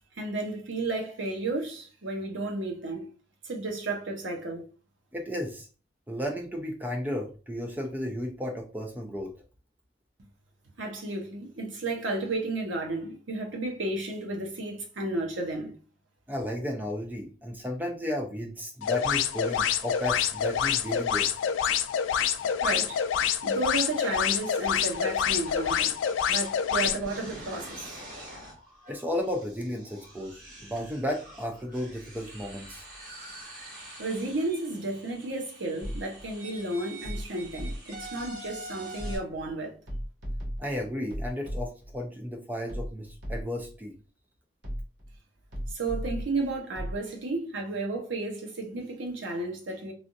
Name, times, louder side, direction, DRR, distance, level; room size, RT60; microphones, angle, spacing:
voice 1, 0.2-3.1 3.4-4.6 10.8-15.7 22.6-23.0 23.4-25.9 26.3-28.0 34.0-39.8 45.7-49.9, right 2 dB, 90° right, 0.8 m, -33 dB
voice 2, 5.1-5.7 6.1-9.3 16.3-21.3 28.9-32.9 40.6-43.9, left 1 dB, 10° right, 0.4 m, -33 dB
sound 1, 18.8-27.0, left 8 dB, 90° left, 0.3 m, -27 dB
sound 2, 24.6-39.2, right 1 dB, 45° right, 1.3 m, -46 dB
sound 3, 35.8-36.3 37.0-38.1 39.0-39.5 39.9-42.0 42.7-43.7 44.6-45.2 45.5-47.0, equal, 70° right, 1.2 m, -36 dB
3.3 x 2.4 x 2.6 m
head